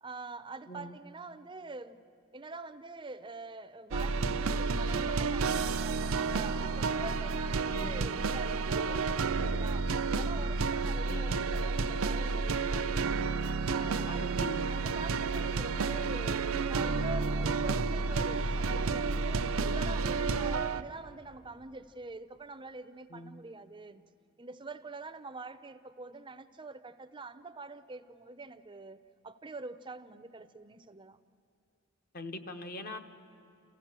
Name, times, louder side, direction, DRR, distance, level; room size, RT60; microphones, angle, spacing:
voice 1, 0.0-2.0 2.3-13.2 13.7-24.0 24.4-31.2, right 3 dB, 25° right, 12 dB, 0.6 m, -45 dB
voice 2, 0.7-1.0 7.7-8.1 11.1-11.5 14.1-14.7 23.1-23.4 32.1-33.0, left 1 dB, 45° left, 8 dB, 1.0 m, -42 dB
sound 1, 3.9-20.8, right 4 dB, 85° right, 0.6 m, -31 dB
29.5 x 15.5 x 7.4 m, 2.5 s
head